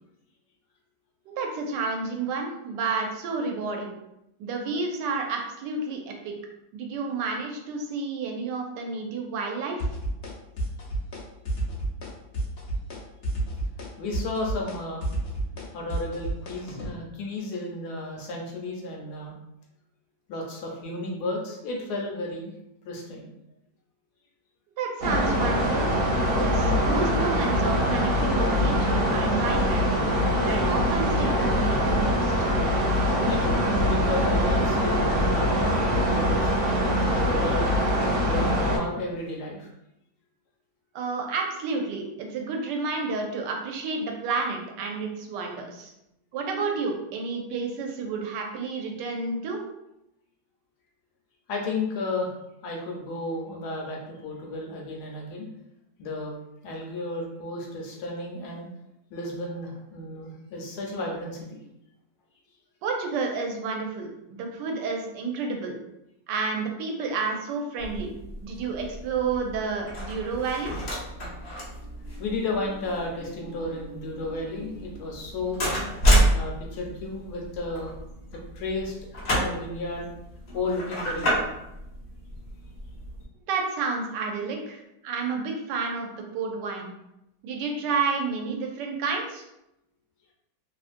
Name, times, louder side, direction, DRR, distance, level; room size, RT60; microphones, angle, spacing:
voice 1, 1.3-3.9 4.4-6.3 6.7-9.9 24.8-25.9 26.4-29.9 30.4-32.5 40.9-45.9 46.3-49.6 62.8-65.8 66.3-68.1 68.4-70.7 83.5-86.9 87.4-89.4, right 4 dB, 80° right, 2 dB, 1.2 m, -30 dB
sound 1, 9.8-10.3 10.6-11.2 11.5-12.1 12.3-13.0 13.2-16.9, right 1 dB, 90° left, 0.5 m, -30 dB
voice 2, 14.0-15.0 15.7-19.3 20.3-22.5 22.8-23.3 33.2-33.6 33.9-36.5 37.1-37.7 38.2-39.7 51.5-52.3 52.6-55.5 56.0-56.3 56.6-58.7 59.1-61.6 72.2-75.6 76.1-77.9 78.3-80.1 80.5-81.5, left 2 dB, 70° left, -1 dB, 1.2 m, -33 dB
sound 2, 25.0-38.8, equal, 50° right, 1.1 m, -23 dB
sound 3, 67.8-83.2, equal, 45° left, 0.8 m, -30 dB
2.9 x 2.5 x 2.5 m, 0.85 s
omnidirectional pair, 1.9 m